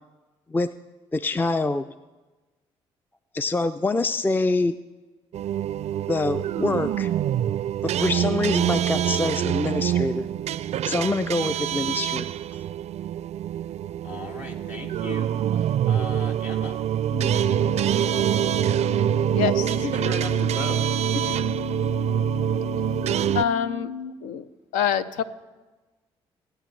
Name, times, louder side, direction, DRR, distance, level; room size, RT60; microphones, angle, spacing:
voice 1, 1.1-1.9 3.3-4.8 6.1-7.1 8.0-10.3 10.8-12.3, left 3 dB, 15° left, 12 dB, 0.4 m, -25 dB
sound 1, 5.3-23.4, right 10 dB, 55° right, 0.4 m, -25 dB
voice 2, 14.0-16.8 19.8-20.8, left 2 dB, 60° left, 0 dB, 2.1 m, -36 dB
sound 2, 17.1-24.1, left 6 dB, 45° left, 0.9 m, -35 dB
voice 3, 19.3-19.8 21.1-21.4 23.3-23.9 24.2-24.5 24.7-25.2, left 8 dB, 80° left, 12 dB, 0.5 m, -26 dB
22.0 x 8.9 x 3.2 m, 1.2 s
hypercardioid pair, 50°, 13 cm